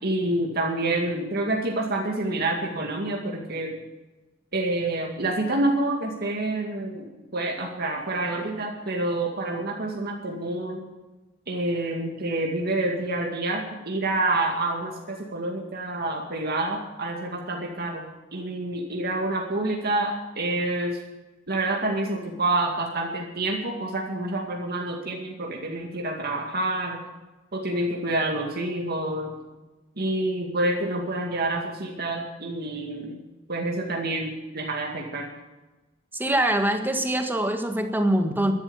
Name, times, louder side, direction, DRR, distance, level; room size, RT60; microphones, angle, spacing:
voice 1, 0.0-3.8 4.5-7.1 7.3-10.8 11.5-18.0 18.3-21.0 21.5-27.0 27.5-29.4 30.0-33.2 33.5-35.3, right 2 dB, 50° right, 0 dB, 2.2 m, -28 dB
voice 2, 36.1-38.5, right 1 dB, 10° right, 5 dB, 1.6 m, -24 dB
13.5 x 12.0 x 7.1 m, 1.1 s
head